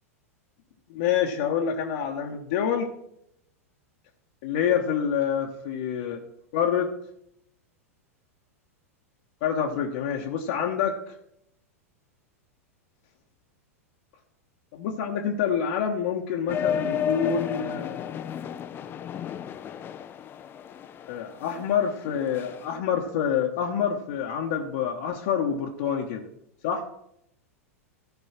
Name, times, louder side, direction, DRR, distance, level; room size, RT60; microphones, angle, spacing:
voice 1, 0.9-2.9 4.4-6.2 6.5-6.9 9.4-11.1 14.7-18.2 21.1-26.3 26.6-26.9, left 8 dB, 55° left, 0 dB, 1.2 m, -27 dB
sound 1, 16.5-22.8, left 8 dB, 25° left, 0.6 m, -33 dB
14.5 x 5.2 x 6.0 m, 0.76 s
figure-of-eight pair, 95°, 8 cm